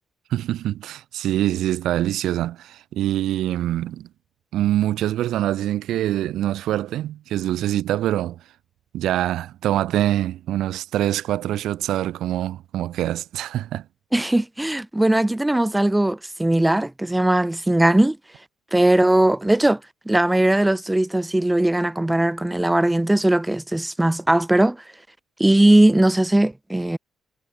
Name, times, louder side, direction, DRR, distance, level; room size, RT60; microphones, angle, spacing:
voice 1, 0.3-4.1 4.5-8.4 8.9-13.8, right 13 dB, 80° right, 1.0 m, -24 dB
voice 2, 14.1-18.2 18.7-19.8 20.1-24.8 25.4-27.0, right 1 dB, 10° right, 0.5 m, -19 dB
cardioid pair, 90°, 0 cm